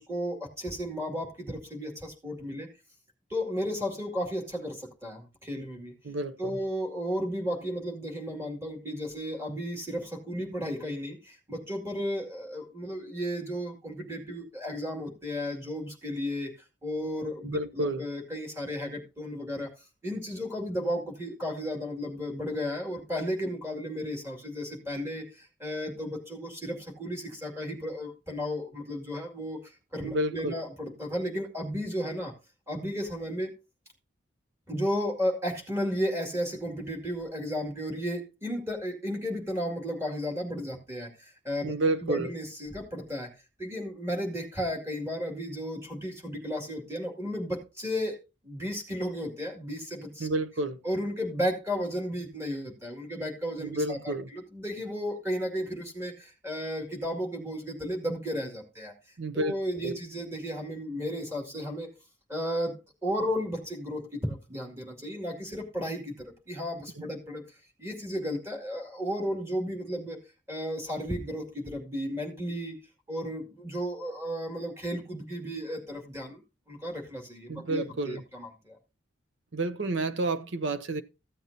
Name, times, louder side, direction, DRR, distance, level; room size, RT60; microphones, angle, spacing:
voice 1, 0.0-2.7 3.3-5.9 6.4-16.5 16.8-19.7 20.0-32.3 32.7-33.5 34.7-41.7 42.0-43.3 43.6-48.2 48.4-50.3 50.8-58.9 59.3-61.9 62.3-62.7 63.0-67.4 67.8-70.2 70.5-72.8 73.1-76.4 76.7-78.8, equal, 15° right, 2.3 m, -34 dB
voice 2, 6.0-6.6 17.4-18.0 30.0-30.5 41.6-42.3 50.2-50.8 53.6-54.3 59.2-59.9 67.0-67.1 77.5-78.2 79.5-81.0, right 2 dB, 75° right, 0.8 m, -30 dB
14.5 x 7.8 x 2.7 m
head